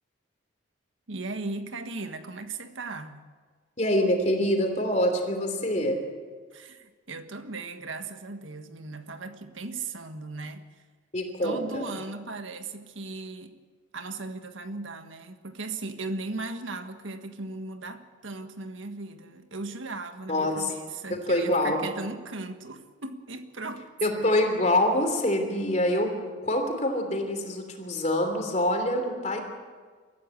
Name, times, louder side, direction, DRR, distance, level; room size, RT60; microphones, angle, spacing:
voice 1, 1.1-3.2 6.5-10.7 11.4-13.6 13.9-23.9, right 3 dB, 80° right, 1.6 m, -37 dB
voice 2, 3.8-6.0 11.1-11.9 20.3-20.7 21.1-21.8 24.0-29.4, left 1 dB, 35° left, 3.1 m, -25 dB
23.0 x 14.5 x 8.4 m
head